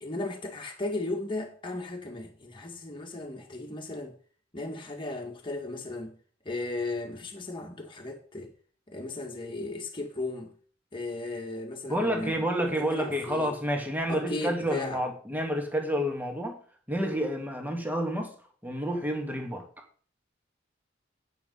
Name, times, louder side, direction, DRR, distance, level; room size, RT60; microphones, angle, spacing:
voice 1, 0.0-4.2 4.5-6.2 6.5-8.5 8.9-10.5 10.9-12.3 12.8-13.5 14.1-15.0, left 2 dB, 25° left, 1.8 m, -36 dB
voice 2, 11.9-16.6 16.9-18.3 18.6-19.7, equal, 10° right, 2.3 m, -29 dB
9.3 x 8.0 x 5.5 m
head